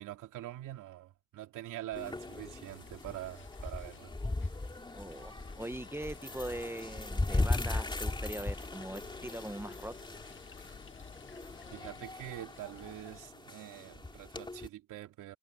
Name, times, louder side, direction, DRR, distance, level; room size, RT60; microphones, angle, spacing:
voice 1, 0.0-4.1 11.7-15.3, right 14 dB, 90° right, 3.2 m, -44 dB
sound 1, 1.9-13.3, left 6 dB, 40° left, 1.9 m, -54 dB
sound 2, 2.0-14.7, left 2 dB, 15° left, 2.7 m, -38 dB
voice 2, 4.9-9.9, right 1 dB, 10° right, 1.1 m, -41 dB
cardioid pair, 90°, 30 cm